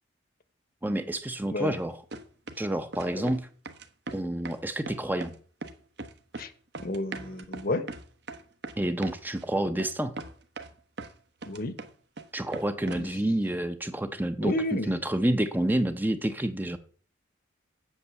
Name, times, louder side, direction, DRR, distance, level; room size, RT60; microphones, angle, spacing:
voice 1, 0.8-2.0 2.6-3.4 4.1-5.3 8.8-10.2 12.3-16.8, right 1 dB, 10° right, 9 dB, 0.6 m, -29 dB
sound 1, 1.7-1.8 2.1-2.7 2.9-3.4 3.7-4.6 4.9-5.4 5.6-6.5 6.7-9.5 9.8-9.9 10.2-11.1 11.4-12.3 12.5-13.1, right 2 dB, 60° right, 1.1 m, -40 dB
voice 2, 6.8-7.8 11.4-11.7 12.9-13.1 14.4-14.9, left 2 dB, 50° left, 13 dB, 1.0 m, -31 dB
8.2 x 7.9 x 6.9 m, 0.43 s
head